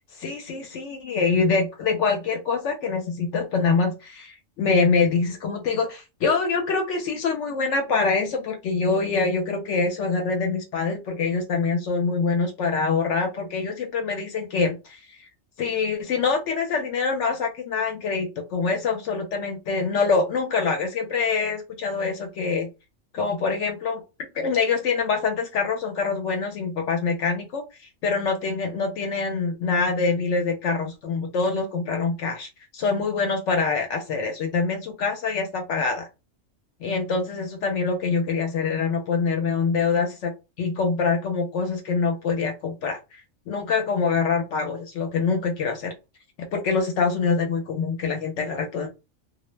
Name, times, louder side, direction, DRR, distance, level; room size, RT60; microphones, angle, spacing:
voice 1, 0.2-15.0 15.6-22.7 23.1-24.0 24.3-27.6 28.0-36.1 36.8-40.3 40.6-43.0 43.5-45.9 46.5-48.9, left 4 dB, 70° left, 4 dB, 0.8 m, -25 dB
2.3 x 2.0 x 3.0 m, 0.27 s
omnidirectional pair, 1.4 m